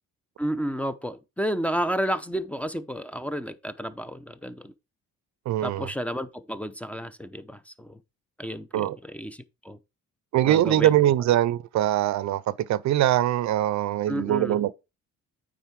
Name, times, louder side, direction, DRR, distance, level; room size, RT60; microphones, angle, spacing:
voice 1, 0.4-4.7 5.6-8.0 8.4-9.8 10.4-11.0 14.1-14.6, equal, 5° left, 0.7 m, -31 dB
voice 2, 5.5-5.9 8.7-9.0 10.3-14.8, right 13 dB, 65° right, 0.5 m, -23 dB
9.0 x 3.9 x 4.7 m
cardioid pair, 90°, 30 cm